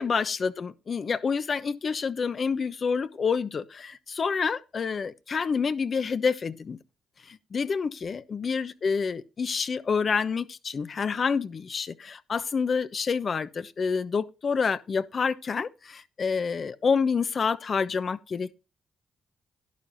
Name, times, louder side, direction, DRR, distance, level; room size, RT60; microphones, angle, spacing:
voice 1, 0.0-6.8 7.3-18.5, left 5 dB, 55° left, 1.0 m, -28 dB
11.5 x 11.5 x 2.7 m
hypercardioid pair, 45°, 0 cm